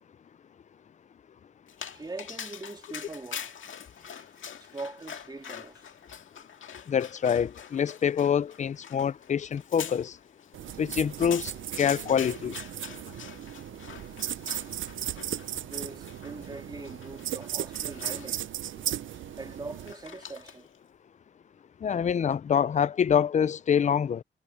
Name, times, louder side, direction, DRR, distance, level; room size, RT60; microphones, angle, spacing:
Dog, 1.7-20.8, left 8 dB, 80° left, 1.9 m, -44 dB
voice 1, 1.9-3.6 3.9-4.3 4.6-5.8 15.6-18.5 19.4-20.7, right 3 dB, 20° right, 2.8 m, -42 dB
voice 2, 6.9-10.1 10.8-11.5 11.8-12.6 21.8-24.2, left 8 dB, 35° left, 0.4 m, -25 dB
Salt Shaker, 10.5-19.9, right 11 dB, 80° right, 0.5 m, -36 dB
wide cardioid pair, 160°, 20 cm